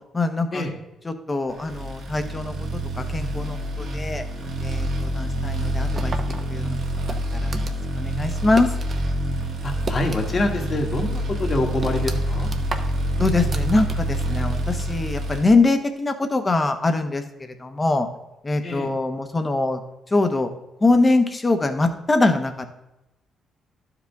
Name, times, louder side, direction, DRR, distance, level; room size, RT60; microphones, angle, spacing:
voice 1, 0.1-0.6 1.1-4.2 4.6-6.2 6.5-6.8 7.1-7.5 8.0-8.7 13.2-18.1 18.4-19.8 20.1-20.5 20.8-22.7, left 2 dB, 25° left, 7 dB, 0.9 m, -23 dB
sound 1, 1.6-15.4, right 1 dB, 65° right, 1.4 m, -26 dB
sound 2, 6.0-9.1 9.4-10.6 10.9-11.0 11.4-14.3, right 4 dB, 40° right, 0.8 m, -35 dB
voice 2, 9.6-12.5 18.6-18.9, left 2 dB, 40° left, 3 dB, 1.5 m, -26 dB
11.5 x 4.9 x 3.5 m, 0.92 s
cardioid pair, 90°, 0 cm